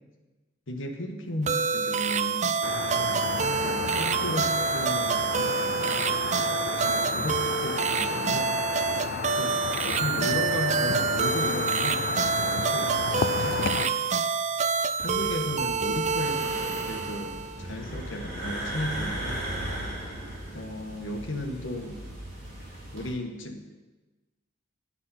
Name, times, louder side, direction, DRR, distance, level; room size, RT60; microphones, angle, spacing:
voice 1, 0.7-2.6 3.3-6.1 6.8-8.5 9.3-12.1 12.4-14.0 15.0-19.4 20.5-22.0 22.9-23.6, left 1 dB, 85° left, 2 dB, 1.3 m, -35 dB
sound 1, 1.5-17.6, right 5 dB, 40° right, 0.4 m, -27 dB
sound 2, 2.6-13.9, left 7 dB, 50° left, 0.3 m, -33 dB
sound 3, 15.0-23.1, right 1 dB, 55° right, 4.1 m, -37 dB
9.6 x 8.5 x 5.7 m, 1.2 s
head